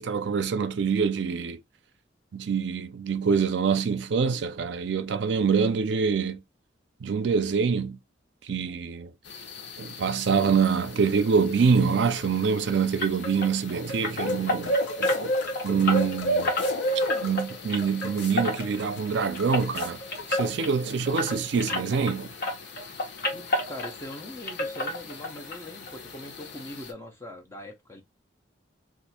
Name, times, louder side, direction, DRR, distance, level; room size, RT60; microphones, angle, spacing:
voice 1, 0.0-1.6 2.3-6.4 7.0-8.0 8.4-9.1 9.8-15.3 15.6-16.5 17.2-20.0 20.3-22.3, right 5 dB, 65° right, 0.4 m, -25 dB
sound 1, 9.2-26.9, equal, 70° left, 0.8 m, -35 dB
sound 2, 13.0-22.2 22.4-24.2 24.5-25.6 25.8-26.0 26.4-26.5 26.8-26.9, left 2 dB, 50° left, 1.1 m, -31 dB
sound 3, 13.6-20.8, left 5 dB, 90° left, 1.3 m, -45 dB
voice 2, 23.3-28.0, left 1 dB, 15° left, 0.7 m, -42 dB
2.7 x 2.4 x 4.1 m
head